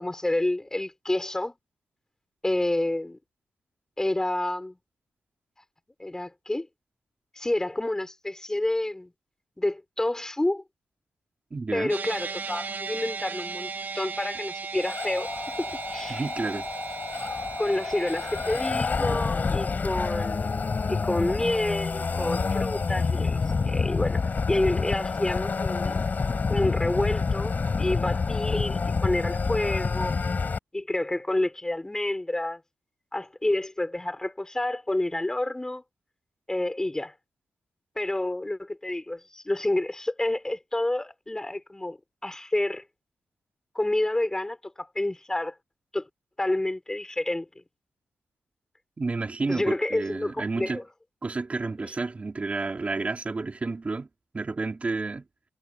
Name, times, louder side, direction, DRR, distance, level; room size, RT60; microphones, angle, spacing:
voice 1, 0.0-1.5 2.4-3.2 4.0-4.8 6.0-6.7 7.4-9.1 9.6-10.6 11.7-13.7 13.9-16.2 17.6-20.6 20.9-24.2 24.5-26.0 26.5-30.2 30.7-32.6 33.1-35.8 36.5-37.1 38.0-42.0 42.2-42.8 43.7-45.5 45.9-46.1 46.4-47.5 49.5-50.8, left 1 dB, 10° left, 5.8 m, -29 dB
voice 2, 11.5-11.9 16.1-16.7 49.0-50.8 51.2-54.1 54.3-55.3, right 3 dB, 30° right, 4.3 m, -30 dB
sound 1, 11.9-18.7, right 5 dB, 45° right, 2.2 m, -36 dB
sound 2, 14.8-30.6, left 4 dB, 40° left, 7.4 m, -28 dB
wide cardioid pair, 130°, 5 cm